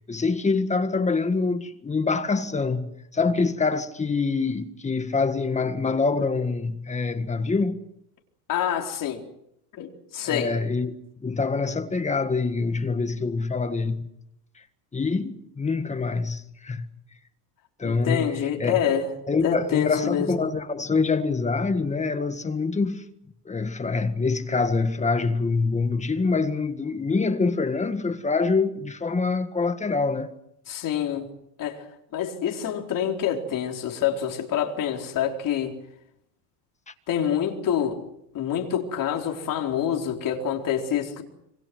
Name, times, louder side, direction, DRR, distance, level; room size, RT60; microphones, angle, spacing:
voice 1, 0.1-7.8 10.2-14.1 14.9-16.9 17.8-18.8 19.3-23.0 23.4-30.3, left 4 dB, 15° left, 1.6 m, -25 dB
voice 2, 8.5-9.2 9.8-10.5 17.8-19.2 19.4-20.4 30.7-31.3 31.6-31.8 32.1-35.7 37.1-38.0 38.3-41.2, left 9 dB, 40° left, 4.4 m, -26 dB
27.0 x 24.5 x 6.3 m
cardioid pair, 140°, 49 cm